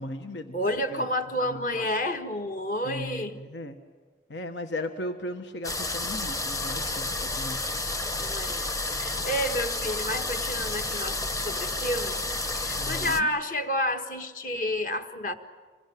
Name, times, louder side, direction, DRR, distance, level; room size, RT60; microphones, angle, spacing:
voice 1, 0.0-0.6 0.9-1.1 1.4-1.9 2.8-3.8 4.3-7.6 12.8-13.3, left 1 dB, 85° left, 6 dB, 1.5 m, -37 dB
voice 2, 0.5-3.3 8.2-8.7 9.0-12.2 12.5-15.3, left 1 dB, 45° left, 6 dB, 1.6 m, -30 dB
sound 1, 5.6-13.2, left 2 dB, 20° left, 1.0 m, -31 dB
26.5 x 22.0 x 9.4 m, 1.4 s
head